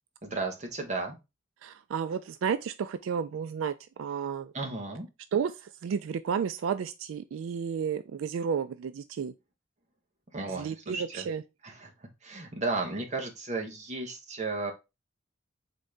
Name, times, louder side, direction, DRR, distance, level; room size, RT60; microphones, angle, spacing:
voice 1, 0.2-1.2 4.5-5.1 10.3-11.3 11.6-11.9 12.2-14.7, right 3 dB, 35° right, 1.0 m, -34 dB
voice 2, 1.6-4.5 5.3-5.5 5.8-9.3 10.6-11.4, right 7 dB, 90° right, 0.3 m, -32 dB
4.0 x 3.6 x 3.2 m
head